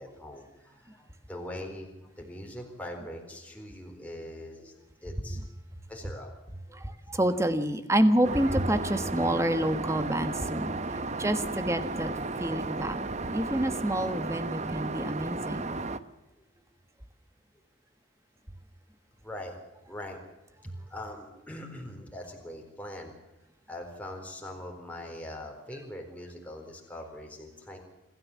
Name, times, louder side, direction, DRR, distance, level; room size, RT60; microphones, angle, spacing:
voice 1, 0.0-5.4 5.9-6.3 6.7-6.9 13.5-13.6 19.2-19.6 19.9-20.2 20.8-23.1 23.7-27.8, left 1 dB, 5° left, 2 dB, 4.1 m, -42 dB
voice 2, 6.7-10.7 11.2-12.1 12.4-13.0 13.3-15.7, right 1 dB, 15° right, 10 dB, 1.4 m, -28 dB
Aircraft, 8.2-16.0, right 3 dB, 35° right, 0.9 m, -34 dB
26.0 x 14.0 x 7.4 m, 1.0 s
head